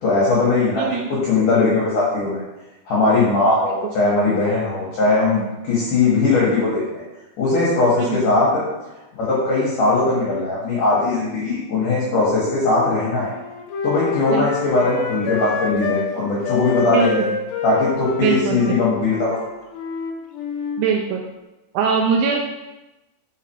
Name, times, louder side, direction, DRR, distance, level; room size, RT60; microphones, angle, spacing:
voice 1, 0.0-0.8 1.3-2.4 2.9-7.0 7.4-8.6 9.2-13.3 13.8-17.2 17.6-19.3, left 3 dB, 60° left, -7 dB, 2.5 m, -19 dB
voice 2, 0.8-1.3 3.7-3.8 8.0-8.2 14.3-14.4 16.9-17.3 18.2-18.7 20.8-21.2 21.7-22.5, right 6 dB, 85° right, 1 dB, 2.2 m, -22 dB
Wind instrument woodwind instrument, 12.1-16.1 16.4-20.9, left 4 dB, 85° left, 2.8 m, -27 dB
5.8 x 5.0 x 4.4 m, 1.0 s
omnidirectional pair, 5.0 m